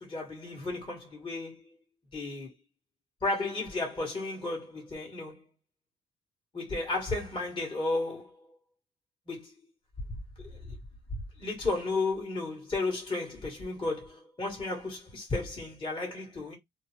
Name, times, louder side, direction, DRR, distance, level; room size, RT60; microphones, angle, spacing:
voice 1, 0.0-1.7 2.1-2.5 3.2-5.4 6.5-8.6 9.3-9.6 10.4-10.8 11.4-16.6, left 3 dB, 25° left, 1.6 m, -33 dB
2.8 x 2.1 x 3.2 m
cardioid pair, 90°, 20 cm